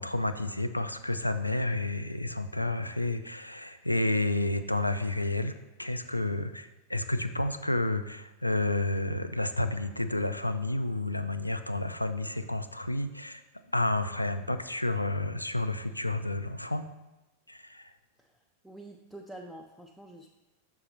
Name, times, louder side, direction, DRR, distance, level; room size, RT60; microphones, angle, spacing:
voice 1, 0.0-5.5 5.8-13.4 13.7-16.8 17.5-17.9, left 2 dB, 85° left, 10 dB, 0.3 m, -30 dB
voice 2, 18.2-20.3, right 1 dB, ahead, 0 dB, 0.4 m, -47 dB
6.3 x 3.8 x 4.2 m, 1.0 s
figure-of-eight pair, 90°, 0 cm